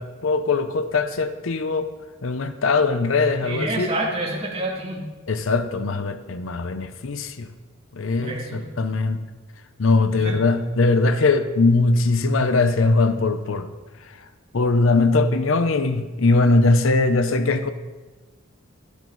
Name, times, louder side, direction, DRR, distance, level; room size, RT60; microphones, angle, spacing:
voice 1, 0.0-1.9 2.2-3.9 5.3-7.5 7.9-9.2 9.8-13.7 14.0-14.3 14.5-17.7, left 3 dB, 65° left, 10 dB, 0.7 m, -21 dB
voice 2, 3.4-5.1 8.2-8.7 10.1-10.4, right 2 dB, 30° right, -1 dB, 2.2 m, -28 dB
12.0 x 12.0 x 4.0 m, 1.2 s
head